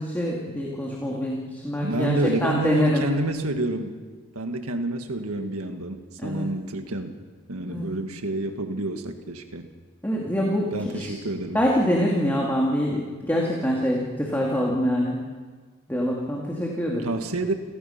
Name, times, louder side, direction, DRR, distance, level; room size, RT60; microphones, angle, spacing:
voice 1, 0.0-3.0 6.2-6.5 7.7-7.9 10.0-11.1 11.5-15.2 15.9-17.1, equal, 10° left, -3 dB, 2.4 m, -25 dB
voice 2, 1.8-4.0 4.3-7.2 7.5-9.7 10.7-11.6 17.0-17.5, right 2 dB, 80° right, 6 dB, 1.7 m, -28 dB
29.5 x 16.5 x 5.9 m, 1.5 s
head